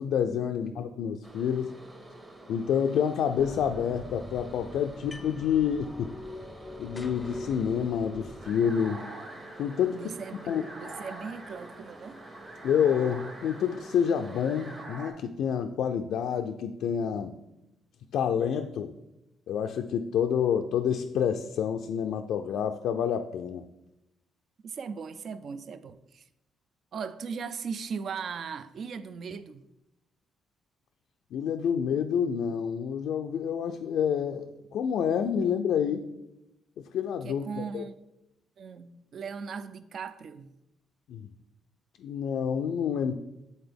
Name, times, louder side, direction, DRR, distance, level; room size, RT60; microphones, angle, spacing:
voice 1, 0.0-1.8 2.5-6.1 6.8-9.0 9.6-10.0 10.5-10.7 12.6-17.4 18.1-18.9 19.5-23.6 31.3-36.1 36.9-37.8 41.1-41.3 42.0-43.1, left 8 dB, 80° left, 0.3 m, -28 dB
sound 1, 1.2-14.9, right 2 dB, 25° right, 1.2 m, -49 dB
sound 2, 3.4-8.5, left 2 dB, 15° left, 0.5 m, -44 dB
sound 3, 8.4-15.1, right 1 dB, 80° right, 1.8 m, -45 dB
voice 2, 9.9-10.5 10.8-12.2 24.6-26.2 26.9-29.6 37.2-38.0 38.6-40.5, right 6 dB, 55° right, 0.3 m, -38 dB
7.9 x 3.9 x 3.4 m
cardioid pair, 90°, 0 cm